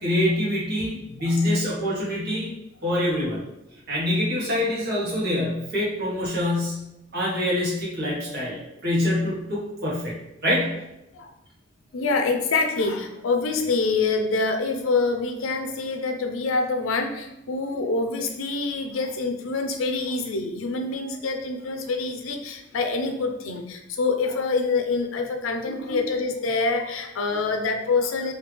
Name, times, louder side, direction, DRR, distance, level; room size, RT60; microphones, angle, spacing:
voice 1, 0.0-2.5 2.8-3.4 3.9-6.8 7.1-10.1 10.4-10.8 25.9-26.0, left 1 dB, 55° right, -5 dB, 1.2 m, -25 dB
voice 2, 11.9-28.3, left 3 dB, 75° left, 5 dB, 0.5 m, -26 dB
3.2 x 2.7 x 3.3 m, 0.88 s
head